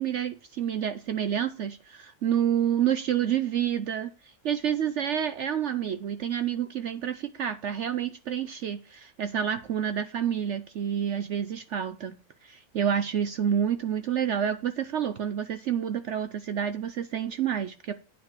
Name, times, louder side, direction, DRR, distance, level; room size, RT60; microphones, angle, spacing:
voice 1, 0.0-4.1 4.4-12.2 12.4-17.9, right 9 dB, 60° right, 0.9 m, -28 dB
9.2 x 5.2 x 7.4 m
omnidirectional pair, 1.5 m